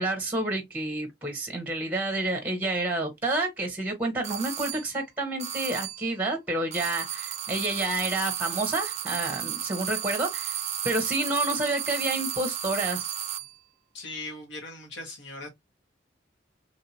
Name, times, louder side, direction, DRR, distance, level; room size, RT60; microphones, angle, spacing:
voice 1, 0.0-10.6 10.8-13.1, right 2 dB, 10° right, 0.9 m, -29 dB
sound 1, 4.2-4.9 5.4-6.1 6.7-13.6, right 10 dB, 35° right, 0.4 m, -33 dB
voice 2, 13.9-15.5, left 2 dB, 85° left, 1.1 m, -39 dB
3.1 x 2.7 x 2.7 m
head